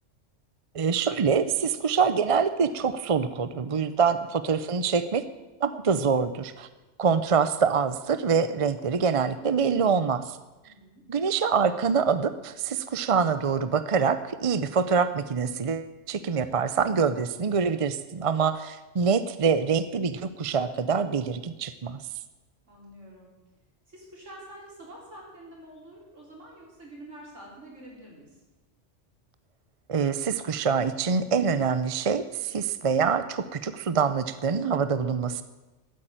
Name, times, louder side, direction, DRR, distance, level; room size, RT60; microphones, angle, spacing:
voice 1, 0.7-5.2 5.6-6.7 7.0-10.4 11.1-22.0 29.9-35.4, right 6 dB, 40° right, 12 dB, 0.5 m, -25 dB
voice 2, 3.8-4.2 10.6-11.0 22.7-23.3 23.9-28.3, right 1 dB, 85° right, -3 dB, 4.8 m, -47 dB
13.0 x 8.7 x 9.0 m, 1.1 s
omnidirectional pair, 1.2 m